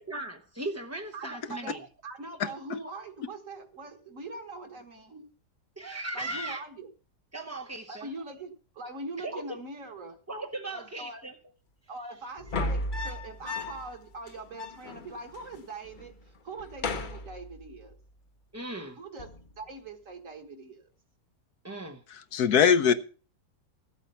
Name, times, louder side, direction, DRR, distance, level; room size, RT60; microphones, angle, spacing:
voice 1, 0.0-1.9 5.8-6.6 7.3-8.1 9.2-9.6 10.3-11.4 18.5-19.0 21.6-22.0, right 1 dB, 15° right, 0.5 m, -37 dB
voice 2, 1.1-5.3 6.1-6.9 7.9-10.2 10.7-11.2 11.9-18.0 19.0-19.3 19.6-20.9, right 3 dB, 55° right, 2.0 m, -42 dB
voice 3, 2.4-2.8 22.3-22.9, left 7 dB, 70° left, 1.3 m, -22 dB
sound 1, 12.4-14.0 14.3-14.4 14.5-15.5 15.8-16.2 16.5-17.9 19.2-19.6, left 2 dB, 40° left, 0.8 m, -35 dB
14.0 x 8.3 x 5.6 m
omnidirectional pair, 1.7 m